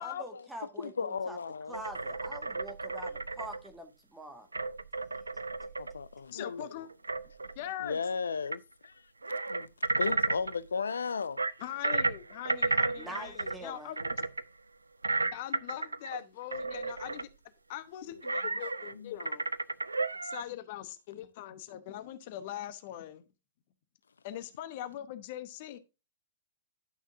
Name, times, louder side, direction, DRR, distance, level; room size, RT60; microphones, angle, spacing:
voice 1, 0.0-1.4 1.7-4.5 5.3-5.4 13.0-13.9, right 1 dB, 5° right, 1.8 m, -44 dB
voice 2, 0.8-1.8 5.8-6.9 7.8-9.1 9.5-11.4 18.1-18.2 18.9-19.1, left 5 dB, 70° left, 0.3 m, -36 dB
sound 1, 1.7-3.7 4.5-6.0 6.9-7.6 8.5-8.6 8.8-8.9 9.2-10.6 11.4-13.7 14.0-14.4 15.0-16.2 16.5-17.3 18.2-18.9 19.2-20.4, right 3 dB, 80° right, 0.4 m, -33 dB
voice 3, 6.3-6.9 7.6-8.0 11.6-14.3 15.2-17.3 17.7-19.5 20.2-23.2 24.2-25.8, left 12 dB, 45° left, 0.9 m, -41 dB
11.5 x 6.3 x 2.6 m
figure-of-eight pair, 105°, 0 cm